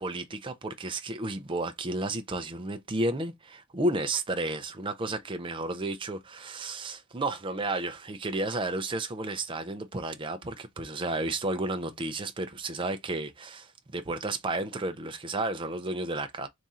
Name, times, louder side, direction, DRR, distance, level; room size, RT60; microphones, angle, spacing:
voice 1, 0.0-16.5, right 2 dB, 25° right, 0.4 m, -32 dB
3.6 x 2.6 x 4.1 m
head